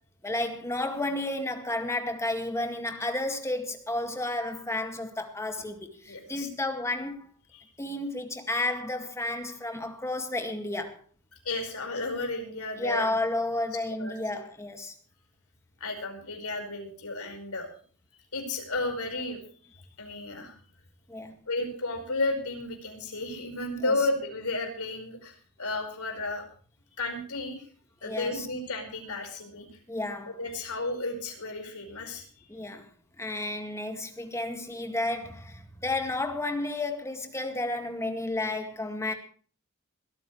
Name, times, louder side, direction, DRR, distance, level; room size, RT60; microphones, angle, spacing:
voice 1, 0.2-7.3 7.8-11.0 12.8-15.0 21.1-21.4 28.0-28.5 29.9-30.3 32.5-32.9 33.2-39.1, left 2 dB, 15° left, 2.0 m, -32 dB
voice 2, 6.1-6.5 7.5-7.6 11.4-13.2 14.0-14.1 15.8-17.7 18.3-19.4 19.7-20.6 21.5-26.4 27.0-27.6 28.0-29.7 30.3-32.3, left 2 dB, 75° left, 5.1 m, -33 dB
21.5 x 13.5 x 3.2 m
head